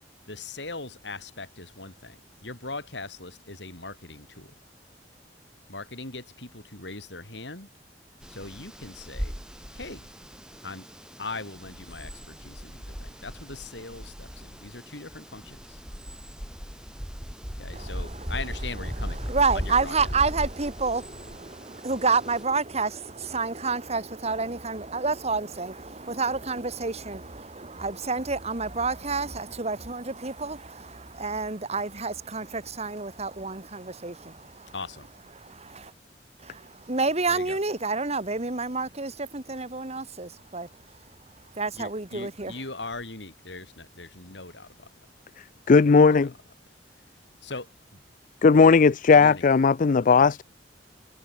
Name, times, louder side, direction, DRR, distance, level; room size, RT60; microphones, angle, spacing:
voice 1, 0.3-4.5 5.7-7.7 8.3-9.3 9.7-10.1 10.6-10.9 11.2-15.8 17.6-19.9 34.7-35.1 37.3-37.6 41.7-44.9 46.2-46.3 47.4-47.7 49.1-49.4, left 3 dB, 80° left, 6.3 m, -40 dB
softwind-birds, 8.2-22.4, equal, 5° right, 4.5 m, -38 dB
voice 2, 17.7-18.3 18.9-34.7 35.3-35.9 36.4-40.7 41.6-42.6, right 4 dB, 40° right, 2.5 m, -29 dB
voice 3, 45.7-46.3 48.4-50.4, left 4 dB, 50° left, 0.4 m, -17 dB
head